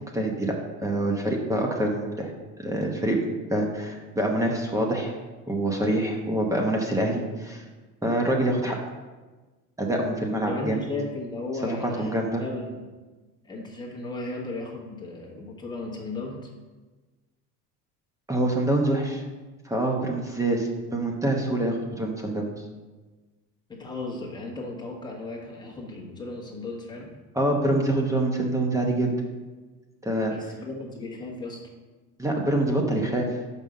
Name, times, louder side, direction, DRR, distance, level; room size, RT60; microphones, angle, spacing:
voice 1, 0.1-0.5 0.8-2.3 2.6-3.2 3.5-5.2 5.5-7.6 8.0-8.8 9.8-10.8 11.6-12.4 18.3-19.2 19.6-22.5 27.3-29.1 30.0-30.3 32.2-33.3, right 1 dB, 10° right, 1 dB, 0.9 m, -25 dB
voice 2, 10.5-12.9 13.4-16.5 23.7-27.1 30.2-31.6, left 2 dB, 10° left, -2 dB, 1.3 m, -35 dB
5.6 x 5.3 x 6.3 m, 1.3 s
cardioid pair, 150°, 34 cm